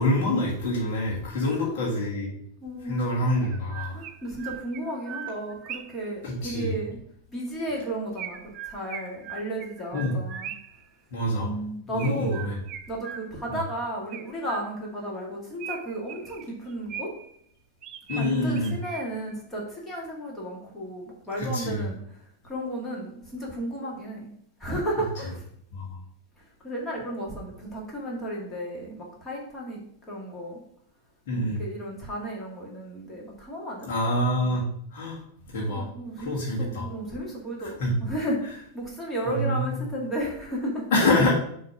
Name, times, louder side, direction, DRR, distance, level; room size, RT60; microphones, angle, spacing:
voice 1, 0.0-2.4 2.8-3.9 6.2-6.7 9.9-10.2 11.1-11.6 11.9-12.6 13.5-13.6 18.1-18.8 21.4-21.9 25.7-26.0 31.3-31.6 33.8-34.6 34.9-35.2 35.5-35.9 36.2-36.9 37.6-38.0 39.3-39.8 40.9-41.3, left 1 dB, 50° left, -5 dB, 1.7 m, -26 dB
voice 2, 1.5-1.8 2.6-3.0 3.9-7.0 7.3-10.5 11.4-12.5 12.9-17.1 18.2-22.0 22.4-24.3 24.6-25.4 26.6-29.8 30.1-30.6 31.6-33.9 35.7-41.2, right 1 dB, 15° left, -3 dB, 2.0 m, -33 dB
Chirp tweet, 2.7-2.8 3.4-6.1 8.2-10.8 12.0-13.6 14.1-15.0 15.6-17.4 17.8-19.3, right 9 dB, 35° right, 0.5 m, -40 dB
6.5 x 3.2 x 5.9 m, 0.68 s
figure-of-eight pair, 90°, 0 cm